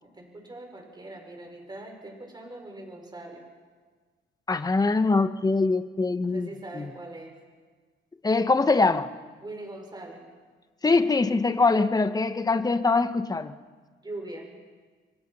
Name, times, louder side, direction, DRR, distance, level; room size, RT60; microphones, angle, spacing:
voice 1, 0.0-3.4 6.2-7.4 9.4-10.2 14.0-14.5, right 2 dB, 20° right, 3 dB, 5.6 m, -41 dB
voice 2, 4.5-6.5 6.8-6.9 8.2-9.1 10.8-13.5, left 3 dB, 20° left, 10 dB, 1.2 m, -23 dB
29.0 x 24.0 x 5.6 m, 1.5 s
cardioid pair, 90°, 20 cm